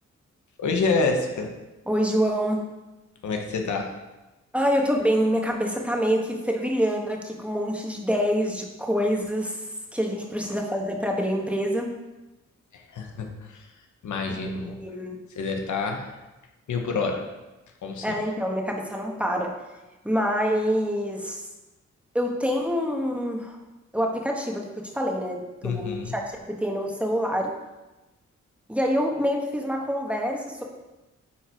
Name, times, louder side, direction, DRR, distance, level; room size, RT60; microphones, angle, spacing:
voice 1, 0.6-1.5 3.2-3.9 12.7-13.7 14.0-14.8 15.3-16.1 16.7-17.2 17.8-18.2 25.6-26.1, left 4 dB, 90° left, 3 dB, 1.0 m, -27 dB
voice 2, 1.9-2.6 4.5-9.6 9.9-11.9 14.6-15.2 18.0-19.5 20.0-21.4 22.1-23.6 23.9-27.5 28.7-30.6, equal, 5° right, 0 dB, 1.5 m, -26 dB
9.5 x 4.5 x 4.6 m, 1.1 s
cardioid pair, 70°, 29 cm